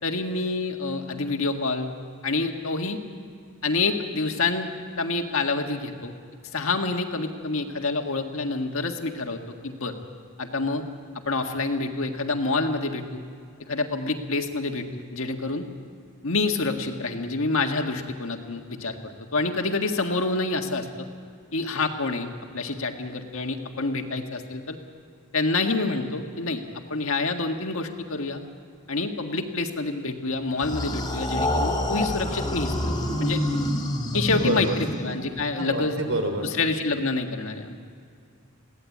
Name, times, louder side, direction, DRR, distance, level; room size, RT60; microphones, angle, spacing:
voice 1, 0.0-1.9 2.2-3.0 3.6-4.7 5.0-6.1 6.5-9.9 10.4-10.8 11.2-13.2 13.7-15.6 16.2-21.1 21.5-24.8 25.3-26.6 26.9-28.4 28.9-32.7 33.2-33.4 34.1-36.0 36.4-37.8, left 3 dB, 65° left, 4 dB, 1.8 m, -27 dB
sound 1, 30.6-35.4, left 1 dB, 15° left, 3.0 m, -27 dB
voice 2, 34.1-34.8 35.6-36.5, right 1 dB, 70° right, 5 dB, 3.5 m, -27 dB
22.0 x 17.0 x 8.5 m, 2.3 s
head